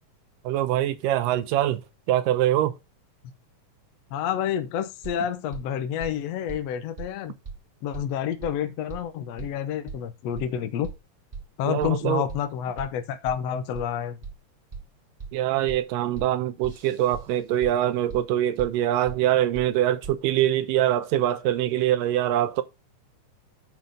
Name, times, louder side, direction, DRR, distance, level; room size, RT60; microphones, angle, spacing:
voice 1, 0.5-1.8 2.1-2.8 11.7-12.2 15.3-22.6, right 12 dB, 85° right, 2.3 m, -24 dB
voice 2, 4.1-7.3 7.8-10.9 11.6-14.2, left 9 dB, 75° left, 1.5 m, -29 dB
sound 1, 5.0-5.1 5.5-5.6 6.0-6.1 6.5-6.6 7.0-7.1 7.4-7.5 7.9-8.0 8.4-8.5 8.9-9.0 9.4-9.5 9.9-10.0 10.4-10.5 10.8-10.9 11.3-11.4 11.8-11.9 12.3-12.4 12.8-12.9 13.3-13.4 13.7-13.8 14.2-14.3 14.7-14.8 15.2-15.3 15.7-15.8 16.2-16.3 16.6-17.2 17.6-17.7 18.1-18.2 18.6-18.7 19.1-19.2 19.5-19.6 20.0-20.1, right 5 dB, 35° right, 0.9 m, -37 dB
9.7 x 4.5 x 5.2 m
omnidirectional pair, 3.9 m